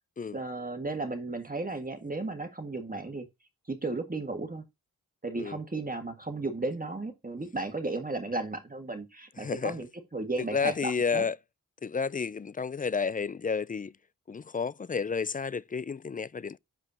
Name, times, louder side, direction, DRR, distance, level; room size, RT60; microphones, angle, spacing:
voice 1, 0.3-3.3 3.7-4.6 5.2-9.9 10.1-11.2, right 2 dB, 25° right, 1.8 m, -34 dB
voice 2, 9.4-9.8 10.5-11.4 11.8-13.9 14.3-16.6, left 5 dB, 25° left, 0.4 m, -31 dB
7.2 x 5.0 x 2.8 m
cardioid pair, 40°, 33 cm